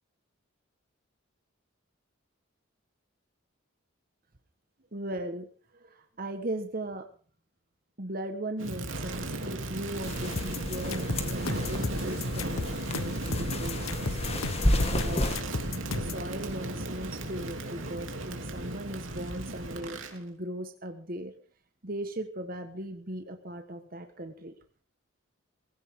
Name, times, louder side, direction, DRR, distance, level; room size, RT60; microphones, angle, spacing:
voice 1, 4.9-5.5 5.7-7.1 8.0-14.2 14.8-15.2 15.9-21.3 21.8-24.5, right 1 dB, 45° right, 7 dB, 1.4 m, -38 dB
Crackle, 8.6-20.2, right 1 dB, 70° right, 3.1 m, -35 dB
sound 1, 10.0-15.4, left 1 dB, 30° left, 2.0 m, -32 dB
sound 2, 10.4-16.2, left 3 dB, 80° left, 1.1 m, -34 dB
20.0 x 16.5 x 3.8 m, 0.42 s
head